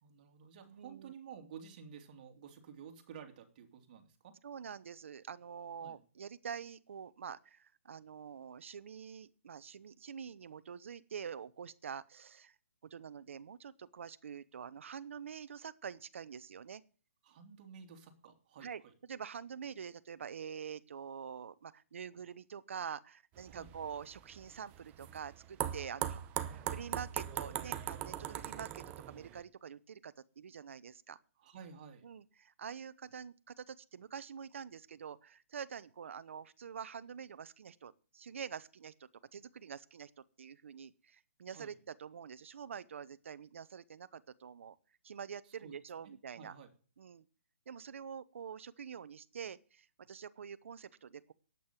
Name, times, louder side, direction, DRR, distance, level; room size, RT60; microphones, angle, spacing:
voice 1, 0.0-4.3 5.8-6.0 17.2-18.9 23.5-23.7 26.4-26.9 31.4-32.0 41.5-41.8 45.6-45.7 46.0-46.7, right 7 dB, 35° right, 4 dB, 2.8 m, -52 dB
voice 2, 0.7-1.1 4.4-12.5 12.8-16.8 18.6-31.2 32.0-44.8 45.0-46.5 47.0-47.2 47.7-51.3, right 7 dB, 60° right, 15 dB, 0.9 m, -46 dB
sound 1, 23.4-29.4, right 12 dB, 15° right, 0.7 m, -40 dB
8.7 x 8.6 x 9.3 m, 0.40 s
hypercardioid pair, 160°, 8 cm